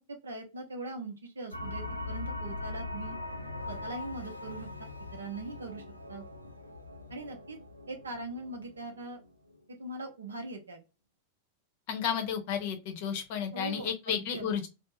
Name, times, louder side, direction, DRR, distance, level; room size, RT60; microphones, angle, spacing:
voice 1, 0.2-3.2 3.7-6.2 7.1-7.6 7.9-9.2 9.7-10.8 13.5-14.5, right 2 dB, 75° right, 4 dB, 0.6 m, -41 dB
sound 1, 1.5-9.6, left 2 dB, 85° left, 0.4 m, -41 dB
voice 2, 11.9-14.7, left 8 dB, 50° left, 6 dB, 0.6 m, -32 dB
2.5 x 2.0 x 2.8 m, 0.28 s
figure-of-eight pair, 90°, 0 cm